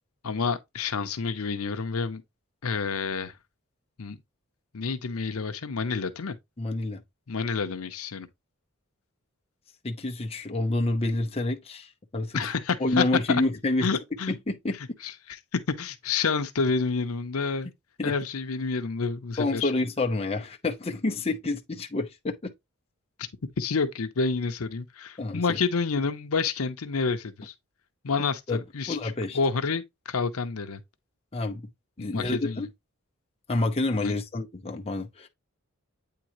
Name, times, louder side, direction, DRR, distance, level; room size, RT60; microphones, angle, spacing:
voice 1, 0.2-2.2 2.6-3.3 4.0-4.2 4.7-6.4 7.3-8.3 12.3-13.4 13.8-14.3 15.0-17.7 18.0-19.7 23.6-27.5 28.0-30.8 32.0-32.7 34.0-34.1, left 4 dB, 80° left, 0.7 m, -29 dB
voice 2, 6.6-7.0 9.8-12.5 12.8-13.9 14.3-14.8 18.0-18.1 19.4-22.5 25.2-25.6 28.5-28.6 28.9-29.4 31.3-31.6 32.0-32.7 33.5-35.3, left 2 dB, 30° left, 0.7 m, -28 dB
8.6 x 3.8 x 3.0 m
head